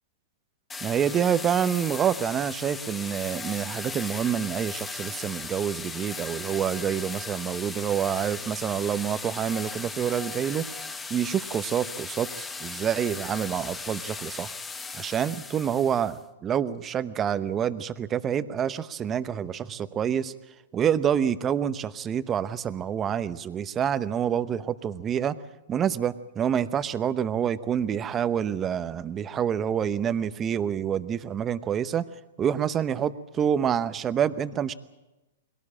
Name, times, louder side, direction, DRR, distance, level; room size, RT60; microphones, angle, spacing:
sound 1, 0.7-16.2, left 4 dB, 10° left, 1.2 m, -37 dB
voice 1, 0.8-14.5 14.9-20.3 20.7-25.4 25.7-32.0 32.4-34.7, right 8 dB, 25° right, 14 dB, 0.9 m, -27 dB
21.5 x 18.0 x 8.6 m, 1.0 s
hypercardioid pair, 125°, 0 cm